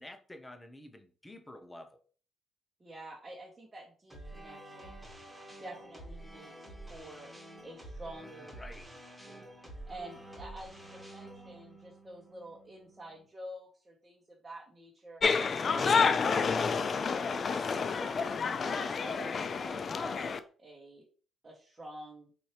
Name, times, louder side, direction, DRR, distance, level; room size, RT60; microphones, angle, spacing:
voice 1, 0.0-2.0 8.5-8.9, left 1 dB, 15° left, 7 dB, 0.7 m, -49 dB
voice 2, 2.8-5.1 5.6-7.3 7.6-8.5 9.2-9.4 9.9-15.2 15.6-19.3 19.6-20.3 20.6-21.1 21.4-22.3, right 1 dB, 25° right, -2 dB, 1.1 m, -49 dB
sound 1, 4.1-13.3, right 1 dB, 5° right, 1.5 m, -49 dB
sound 2, 15.2-20.4, left 5 dB, 45° left, 0.3 m, -29 dB
4.3 x 2.7 x 3.2 m, 0.40 s
cardioid pair, 90°, 0 cm